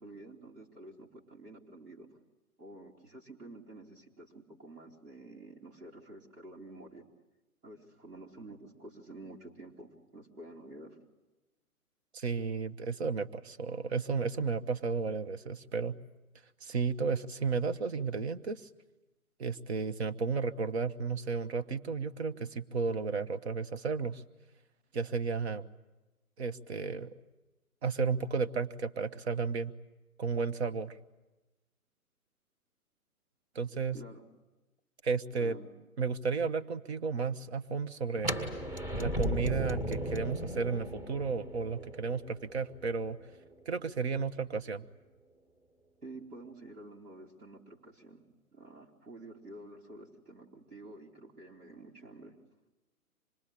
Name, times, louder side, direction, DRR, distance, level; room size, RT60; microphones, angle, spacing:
voice 1, 0.0-2.1 2.6-7.1 7.6-11.0 33.9-34.2 35.4-35.7 46.0-48.2 48.5-52.3, right 2 dB, 85° right, -3 dB, 3.5 m, -50 dB
voice 2, 12.1-16.0 16.6-18.7 19.4-24.2 24.9-25.7 26.4-27.1 27.8-29.7 30.2-31.0 33.5-34.0 35.0-35.6 36.0-38.3 38.9-43.2 43.7-44.9, right 5 dB, 45° right, 12 dB, 1.1 m, -33 dB
sound 1, 38.2-44.0, equal, 15° right, 1.6 m, -37 dB
26.0 x 21.0 x 9.9 m, 1.1 s
figure-of-eight pair, 125°, 44 cm